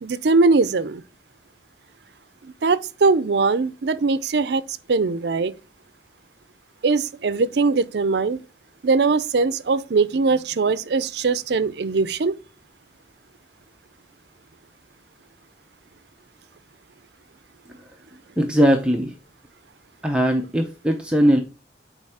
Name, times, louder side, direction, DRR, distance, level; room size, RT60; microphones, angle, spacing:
voice 1, 0.0-1.0 2.6-5.5 6.8-8.4 8.8-12.4, right 4 dB, 65° right, 0.5 m, -21 dB
voice 2, 18.4-19.1 20.0-21.4, equal, 5° right, 0.6 m, -19 dB
8.1 x 4.7 x 3.5 m
head